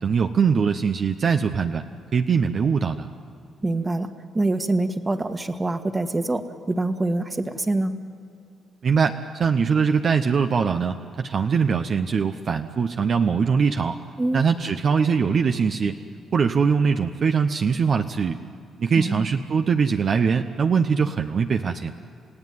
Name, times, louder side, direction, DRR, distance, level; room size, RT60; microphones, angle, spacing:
voice 1, 0.0-1.8 2.1-3.1 8.8-14.0 14.3-16.0 16.3-18.4 18.8-21.9, right 6 dB, 50° right, 6 dB, 0.8 m, -22 dB
voice 2, 3.6-8.0 14.2-14.4 19.0-19.3, right 2 dB, 20° right, 7 dB, 1.6 m, -25 dB
29.0 x 16.5 x 9.4 m, 2.5 s
cardioid pair, 90°, 0 cm